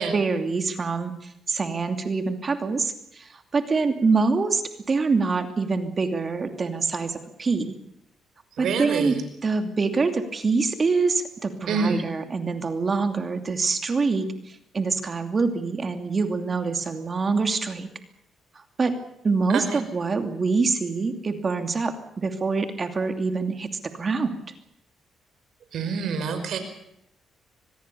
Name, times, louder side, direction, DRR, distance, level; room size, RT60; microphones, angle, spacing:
voice 1, 0.0-4.6 4.9-7.7 8.6-17.9 18.8-19.0 19.2-23.7 23.9-24.4, right 4 dB, 35° right, 7 dB, 2.7 m, -25 dB
voice 2, 8.6-9.2 11.7-12.1 19.5-19.8 25.7-26.6, right 5 dB, 70° right, 8 dB, 5.3 m, -26 dB
25.5 x 20.0 x 7.0 m, 0.76 s
cardioid pair, 90°, 0 cm